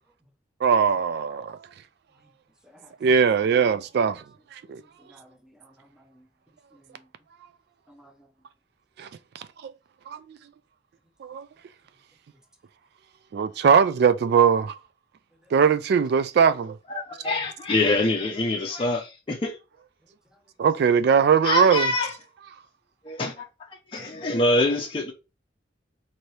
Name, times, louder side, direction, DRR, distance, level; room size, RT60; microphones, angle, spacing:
voice 1, 0.6-1.6 3.0-4.2 4.5-4.8 9.0-9.1 9.6-9.7 10.1-10.4 11.2-11.5 13.3-14.8 15.5-16.8 20.6-21.9, right 6 dB, 60° right, 0.3 m, -20 dB
voice 2, 4.7-5.9 6.1-6.2 6.7-7.0 7.9-8.3, equal, 5° right, 0.8 m, -55 dB
voice 3, 16.9-19.6 20.8-21.0 21.4-22.1 23.0-25.1, left 2 dB, 30° left, 0.6 m, -25 dB
4.4 x 2.7 x 3.1 m
head